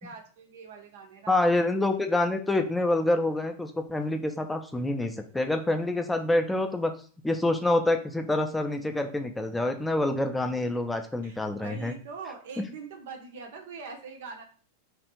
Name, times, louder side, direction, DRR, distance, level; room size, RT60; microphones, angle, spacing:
voice 1, 0.0-1.4 10.5-10.8 11.2-14.4, right 5 dB, 55° right, 3 dB, 0.5 m, -43 dB
voice 2, 1.3-6.9 7.2-11.9, left 2 dB, 5° left, 6 dB, 0.4 m, -27 dB
3.3 x 2.4 x 2.9 m, 0.40 s
figure-of-eight pair, 90°, 0 cm